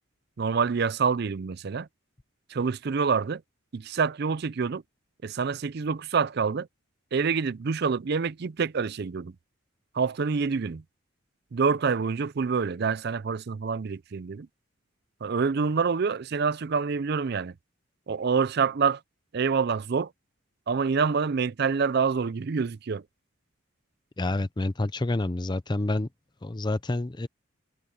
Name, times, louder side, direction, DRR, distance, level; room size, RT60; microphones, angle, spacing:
voice 1, 0.4-1.9 2.5-3.4 3.7-4.8 5.2-6.7 7.1-9.3 9.9-10.8 11.5-14.5 15.2-17.5 18.1-19.0 19.3-20.1 20.7-23.0, right 5 dB, 50° right, 0.4 m, -26 dB
voice 2, 24.2-26.1 26.4-27.3, left 2 dB, 20° left, 0.6 m, -28 dB
head